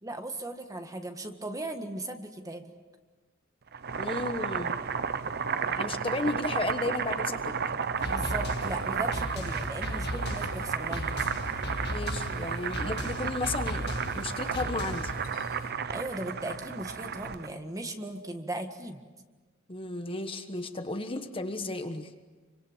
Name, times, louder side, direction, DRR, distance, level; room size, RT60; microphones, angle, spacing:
voice 1, 0.0-2.6 8.0-11.0 15.9-19.0, right 1 dB, 15° right, 5 dB, 1.7 m, -37 dB
Boiling, 3.7-17.5, right 6 dB, 50° right, 0.8 m, -33 dB
voice 2, 4.0-4.8 5.7-7.5 11.9-13.9 14.1-15.1 19.7-22.1, left 2 dB, 25° left, 7 dB, 1.3 m, -33 dB
sound 1, 8.0-15.7, equal, 90° left, 3.5 m, -46 dB
sound 2, 8.0-15.2, left 1 dB, 55° left, 1.7 m, -37 dB
26.0 x 25.5 x 7.3 m, 1.3 s
head